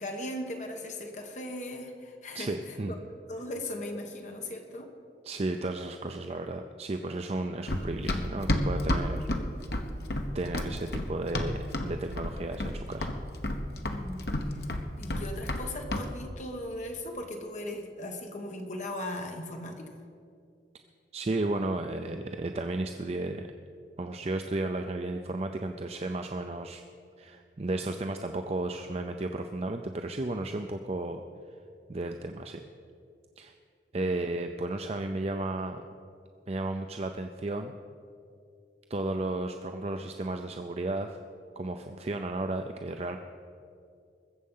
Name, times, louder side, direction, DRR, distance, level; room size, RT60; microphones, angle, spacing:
voice 1, 0.0-3.0 3.3-4.9 13.8-14.6 15.0-19.9, left 1 dB, 40° left, 3 dB, 1.2 m, -38 dB
voice 2, 2.3-2.9 5.2-9.3 10.3-11.6 11.8-13.1 21.1-23.5 24.0-26.8 27.2-31.2 31.9-32.6 33.4-33.5 33.9-35.8 36.5-37.7 38.9-41.2 41.6-43.2, right 2 dB, 35° right, 6 dB, 0.5 m, -33 dB
Run, 7.7-11.9 12.2-12.8 13.0-15.6 15.9-16.1, left 1 dB, 60° left, 1.1 m, -30 dB
21.0 x 7.6 x 5.5 m, 2.4 s
head